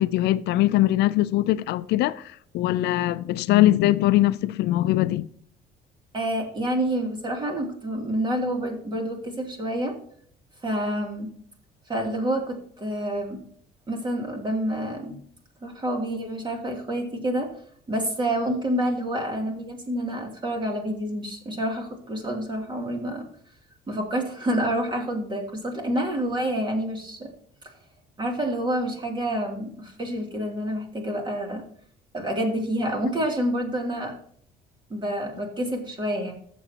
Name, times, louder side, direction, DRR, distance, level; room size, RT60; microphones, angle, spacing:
voice 1, 0.0-5.3, left 15 dB, 80° left, 0.5 m, -22 dB
voice 2, 6.1-9.9 10.6-11.3 11.9-13.4 13.9-15.2 15.6-17.5 17.9-23.3 23.9-27.3 28.2-31.6 32.1-34.1 34.9-36.3, right 1 dB, 25° right, 2.8 m, -28 dB
15.5 x 7.0 x 2.9 m
cardioid pair, 110°, 17 cm